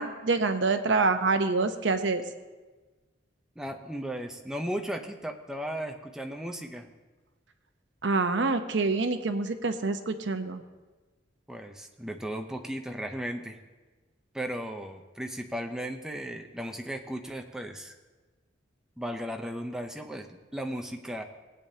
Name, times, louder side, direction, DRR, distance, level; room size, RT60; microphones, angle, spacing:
voice 1, 0.0-2.2 8.0-10.6, right 3 dB, 75° right, 8 dB, 0.8 m, -26 dB
voice 2, 3.6-6.9 11.5-13.6 14.3-18.0 19.0-21.2, equal, 5° right, 3 dB, 0.7 m, -36 dB
19.0 x 8.6 x 2.8 m, 1.3 s
head